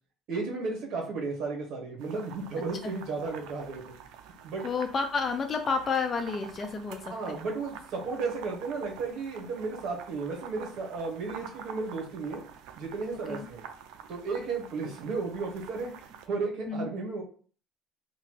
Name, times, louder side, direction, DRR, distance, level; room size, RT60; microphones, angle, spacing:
voice 1, 0.3-4.0 4.4-4.7 7.1-12.4 12.8-13.6 14.1-17.2, right 4 dB, 60° right, 0 dB, 1.0 m, -34 dB
sound 1, 2.0-16.3, right 8 dB, 80° right, 0.3 m, -47 dB
voice 2, 4.6-7.5 13.3-13.5 16.7-16.9, left 5 dB, 35° left, 5 dB, 0.3 m, -31 dB
2.9 x 2.2 x 3.1 m, 0.43 s
cardioid pair, 120°, 0 cm